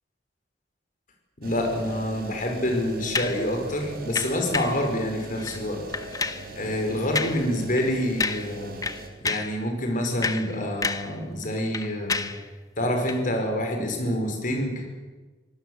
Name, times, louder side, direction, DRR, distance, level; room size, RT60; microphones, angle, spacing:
voice 1, 1.4-5.8 6.5-8.8 9.2-12.3 12.8-14.9, left 1 dB, 45° left, 3 dB, 5.3 m, -27 dB
sound 1, 1.4-9.1, right 2 dB, 60° right, 4.3 m, -41 dB
sound 2, 3.1-3.4 4.2-4.8 5.4-5.6 5.9-6.5 7.2-7.5 7.8-7.9 8.2-8.6 8.8-9.6 10.0-11.2 11.4-12.4 13.0-13.2, left 4 dB, 20° left, 1.0 m, -30 dB
25.0 x 19.0 x 8.0 m, 1.3 s
head